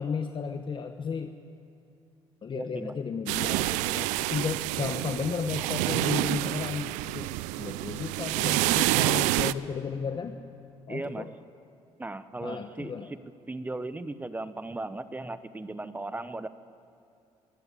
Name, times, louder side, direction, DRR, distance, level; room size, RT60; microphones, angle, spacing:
voice 1, 0.0-1.3 2.4-7.3 7.6-10.4 10.9-11.3 12.4-13.1, left 6 dB, 40° left, 7 dB, 1.1 m, -34 dB
voice 2, 2.5-3.0 10.9-11.2 12.0-13.2 13.5-16.5, right 2 dB, 15° right, 13 dB, 0.9 m, -37 dB
sound 1, 3.3-9.5, right 19 dB, 90° right, 0.4 m, -28 dB
23.5 x 15.0 x 8.3 m, 2.6 s
supercardioid pair, 80°, 12 cm